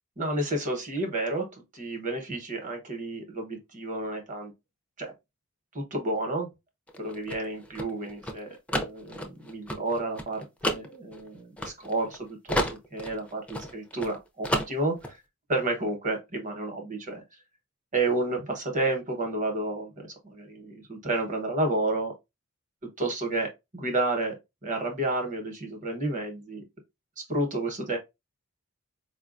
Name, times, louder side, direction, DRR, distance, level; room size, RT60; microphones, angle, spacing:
voice 1, 0.2-4.5 5.0-5.1 5.7-6.5 7.0-8.5 8.7-15.2 15.5-17.2 17.9-22.1 23.0-24.4 24.6-26.6 27.2-28.0, right 2 dB, 35° right, 0.9 m, -31 dB
sound 1, 6.9-12.2 12.5-14.2 14.4-15.1, equal, 5° left, 0.4 m, -31 dB
4.5 x 2.2 x 2.4 m
head